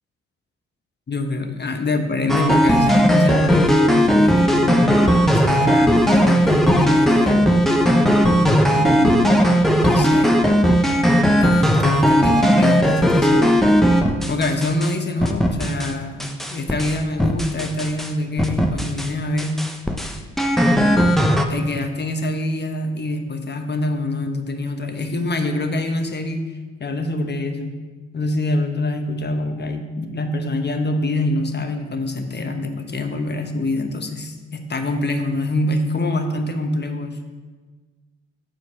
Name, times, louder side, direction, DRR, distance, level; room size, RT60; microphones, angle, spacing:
voice 1, 1.1-7.5 8.4-9.5 9.8-10.4 11.4-13.5 14.3-19.6 21.5-26.4 26.8-27.8 28.1-37.2, left 2 dB, 35° left, 5 dB, 1.1 m, -25 dB
sound 1, 2.3-14.9 15.2-15.9 16.2-18.1 18.4-19.1 19.4-21.4, equal, ahead, 0.9 m, -17 dB
7.5 x 4.4 x 6.8 m, 1.4 s
supercardioid pair, 50°, 29 cm